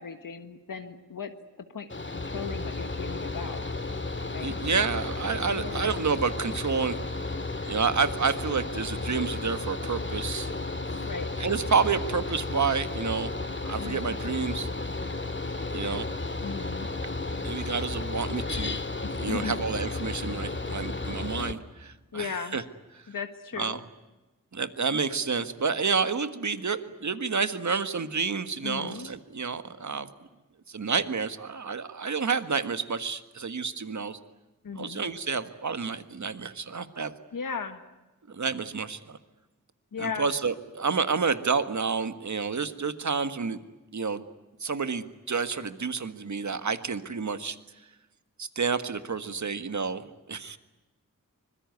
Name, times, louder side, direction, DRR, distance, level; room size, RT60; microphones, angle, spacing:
voice 1, 0.0-1.3 1.7-3.6 4.3-4.6 5.5-6.0 11.0-11.3 13.8-14.2 16.4-16.9 19.0-19.6 22.1-22.6 23.1-23.8 28.6-29.1 34.6-35.0 37.3-37.8 39.9-40.3, left 6 dB, 90° left, 7 dB, 1.6 m, -37 dB
Mechanical fan, 1.9-21.5, left 3 dB, 35° left, 2.1 m, -33 dB
voice 2, 4.4-7.0 7.7-10.5 11.4-13.3 13.6-14.7 15.7-16.1 17.4-18.8 19.2-22.6 23.6-23.8 24.5-30.1 30.7-34.2 34.7-37.1 38.3-39.2 40.0-43.6 43.9-44.2 44.6-47.6 48.4-50.6, right 5 dB, 60° right, 10 dB, 1.6 m, -29 dB
25.0 x 22.0 x 9.6 m, 1.1 s
wide cardioid pair, 70°, 32 cm